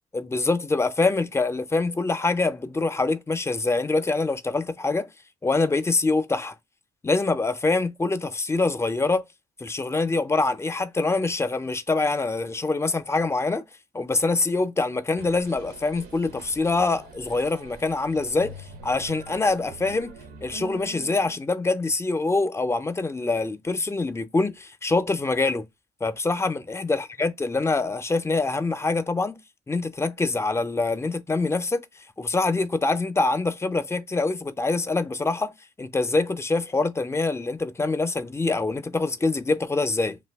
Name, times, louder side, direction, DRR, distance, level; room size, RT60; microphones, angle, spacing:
voice 1, 0.1-5.1 5.4-6.5 7.0-9.2 9.6-13.7 13.9-18.6 18.8-20.1 20.4-25.6 26.0-29.4 29.7-31.8 32.2-35.5 35.8-40.2, left 3 dB, 15° left, 0.4 m, -25 dB
sound 1, 15.2-21.4, right 4 dB, 85° right, 0.6 m, -44 dB
2.6 x 2.2 x 3.4 m
cardioid pair, 85°, 15 cm